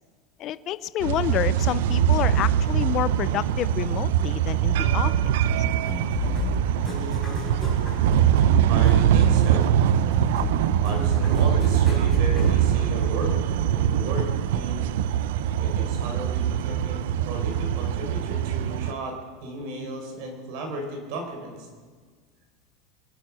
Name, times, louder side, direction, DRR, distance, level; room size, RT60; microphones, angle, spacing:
voice 1, 0.4-5.1, left 12 dB, 35° left, 16 dB, 0.4 m, -28 dB
sound 1, 1.0-18.9, right 10 dB, 75° right, 0.5 m, -22 dB
sound 2, 5.8-13.5, left 2 dB, 5° left, 3.8 m, -32 dB
voice 2, 8.6-9.7 10.8-14.9 15.6-21.7, right 1 dB, 60° right, 3 dB, 4.5 m, -35 dB
23.5 x 9.5 x 6.3 m, 1.5 s
supercardioid pair, 150°, 0 cm